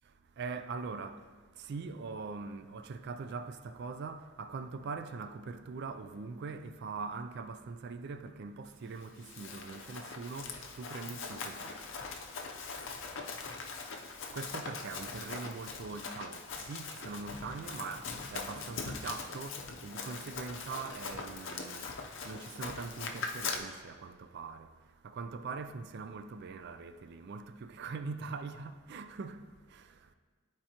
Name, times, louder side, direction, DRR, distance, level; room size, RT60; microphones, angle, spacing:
voice 1, 0.0-11.7 14.3-30.1, right 4 dB, 55° right, 0.3 m, -42 dB
Run, 9.0-23.6, left 4 dB, 60° left, 0.6 m, -41 dB
11.5 x 4.5 x 2.9 m
head